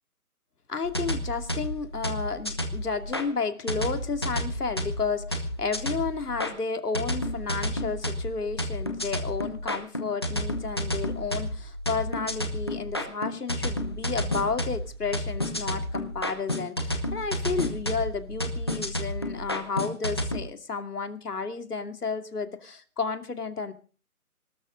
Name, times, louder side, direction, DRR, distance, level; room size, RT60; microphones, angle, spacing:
voice 1, 0.7-23.7, left 4 dB, 90° left, 8 dB, 2.7 m, -32 dB
sound 1, 0.8-3.2 3.7-6.5 6.9-20.4, equal, 15° left, 0.9 m, -31 dB
24.0 x 13.0 x 3.9 m, 0.38 s
hypercardioid pair, 175°, 45 cm